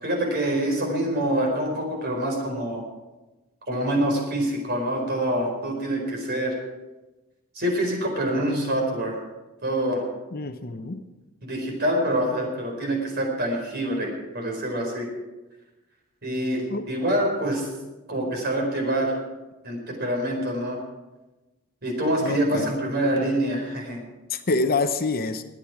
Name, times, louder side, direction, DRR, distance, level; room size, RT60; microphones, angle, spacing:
voice 1, 0.0-2.8 3.7-6.6 7.5-9.2 9.6-10.1 11.4-15.1 16.2-17.7 18.1-19.2 19.6-20.8 21.8-24.0, right 1 dB, 45° right, 1 dB, 4.5 m, -26 dB
voice 2, 10.3-11.0 16.7-16.8 22.2-22.8 24.3-25.4, left 3 dB, 45° left, 8 dB, 0.8 m, -26 dB
22.0 x 8.9 x 4.8 m, 1.1 s
head